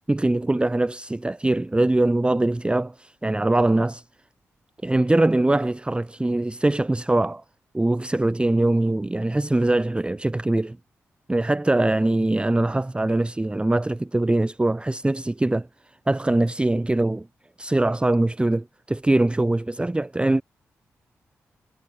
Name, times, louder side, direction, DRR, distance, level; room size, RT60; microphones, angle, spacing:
voice 1, 0.1-4.0 4.8-7.4 7.7-10.8 11.3-15.7 16.1-17.3 17.6-20.4, right 2 dB, 15° right, 0.7 m, -22 dB
supercardioid pair, 40°, 6 cm